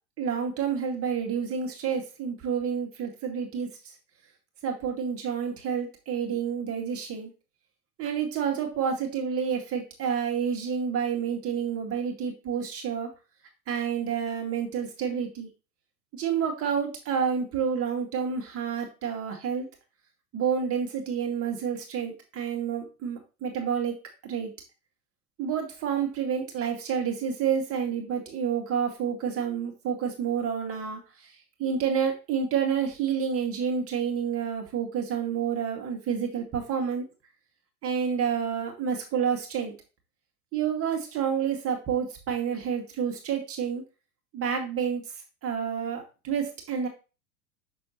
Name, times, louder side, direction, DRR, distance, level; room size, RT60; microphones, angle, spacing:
voice 1, 0.2-3.7 4.6-7.3 8.0-13.1 13.7-15.5 16.1-19.7 20.3-24.0 24.2-24.5 25.4-31.3 31.6-37.0 37.8-39.7 40.5-43.8 44.3-45.0 45.4-46.9, right 7 dB, 30° right, 3 dB, 1.8 m, -29 dB
6.2 x 6.1 x 2.9 m, 0.31 s
figure-of-eight pair, 85°, 45 cm